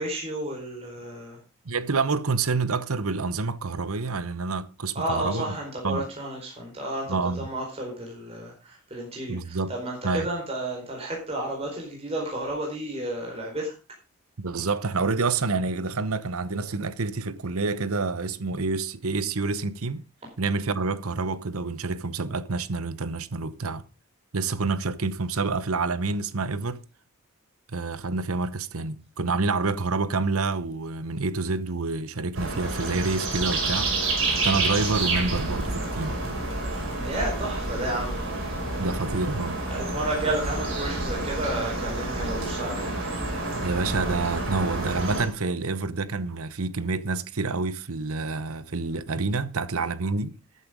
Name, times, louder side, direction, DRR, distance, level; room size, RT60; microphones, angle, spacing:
voice 1, 0.0-1.4 4.9-13.7 37.0-38.2 39.7-42.9, right 1 dB, 30° right, 4.6 m, -32 dB
voice 2, 1.6-5.4 5.8-6.0 7.1-7.4 9.3-9.7 10.0-10.3 14.4-20.0 20.4-23.8 24.3-26.8 27.7-33.9 34.4-36.2 38.8-39.6 43.6-50.3, right 3 dB, 75° right, 0.9 m, -28 dB
sound 1, 32.3-45.3, right 2 dB, 60° right, 5.9 m, -29 dB
13.5 x 8.4 x 5.1 m
head